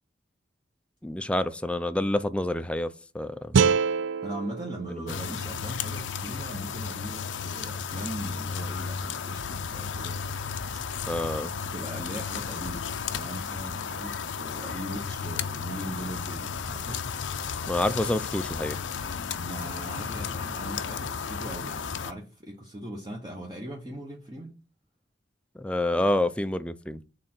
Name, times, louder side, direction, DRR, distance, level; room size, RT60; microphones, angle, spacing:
voice 1, 1.0-3.5 11.1-11.5 17.7-18.8 25.6-27.0, left 1 dB, 5° left, 0.4 m, -28 dB
sound 1, 3.5-6.6, right 6 dB, 85° right, 0.4 m, -27 dB
voice 2, 4.2-10.3 11.5-17.0 19.3-24.6, right 1 dB, 20° right, 0.9 m, -39 dB
sound 2, 5.1-22.1, left 6 dB, 90° left, 0.6 m, -34 dB
6.5 x 3.8 x 6.0 m
head